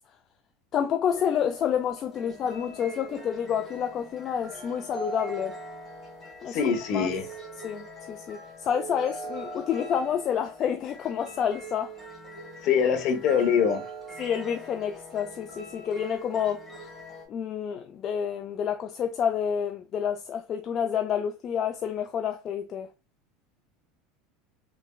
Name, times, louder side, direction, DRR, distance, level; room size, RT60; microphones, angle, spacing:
voice 1, 0.7-5.6 6.4-7.1 7.6-12.0 14.2-16.6 17.3-22.9, left 8 dB, 40° left, 0.3 m, -29 dB
sound 1, 1.1-17.3, right 1 dB, 15° left, 1.4 m, -42 dB
voice 2, 6.5-7.2 12.6-13.8, left 7 dB, 55° left, 0.8 m, -23 dB
3.3 x 3.1 x 2.2 m
supercardioid pair, 130°, 0 cm